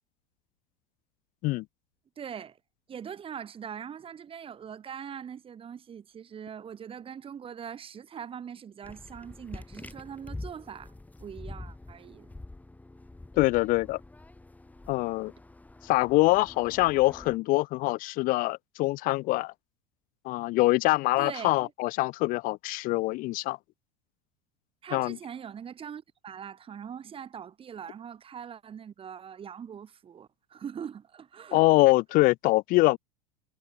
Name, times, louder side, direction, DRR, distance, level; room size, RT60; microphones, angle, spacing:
voice 1, 2.2-2.6 2.9-10.9 11.2-12.3 21.2-21.7 24.8-31.6, right 8 dB, 30° right, 7.6 m, -42 dB
sound 1, 8.8-17.4, left 2 dB, 10° left, 6.3 m, -46 dB
voice 2, 13.4-14.0 14.9-15.3 15.8-19.5 20.3-23.6 24.9-25.2 31.5-33.0, left 20 dB, 45° left, 1.8 m, -24 dB
figure-of-eight pair, 80°, 19 cm